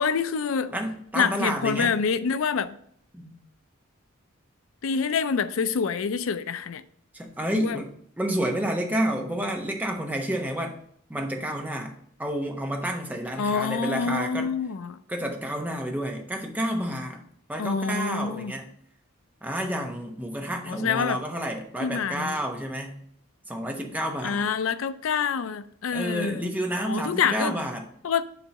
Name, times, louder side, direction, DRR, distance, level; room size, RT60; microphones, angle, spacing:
voice 1, 0.0-0.7 1.2-2.8 4.8-6.8 7.5-7.8 13.4-15.0 17.6-18.5 20.7-21.2 21.8-22.4 24.2-26.5 26.8-27.6 28.0-28.2, left 6 dB, 75° left, 0.4 m, -26 dB
voice 2, 0.7-1.9 3.1-3.4 7.1-7.9 8.2-10.7 11.1-14.5 15.1-17.2 17.5-18.7 19.4-23.0 23.5-24.5 25.9-27.9, right 1 dB, 10° right, 0.9 m, -30 dB
7.0 x 3.6 x 5.3 m
head